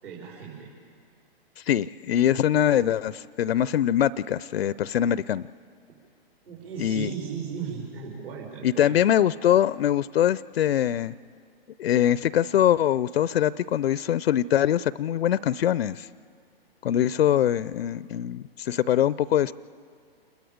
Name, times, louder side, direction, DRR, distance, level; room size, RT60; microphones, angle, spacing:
voice 1, 0.0-0.7 6.5-9.0, right 7 dB, 70° right, -3 dB, 4.6 m, -36 dB
voice 2, 1.6-5.5 6.8-7.1 8.6-11.1 11.8-16.1 16.8-19.5, left 10 dB, 75° left, 19 dB, 0.5 m, -23 dB
28.0 x 21.0 x 5.1 m, 2.3 s
hypercardioid pair, 125°, 30 cm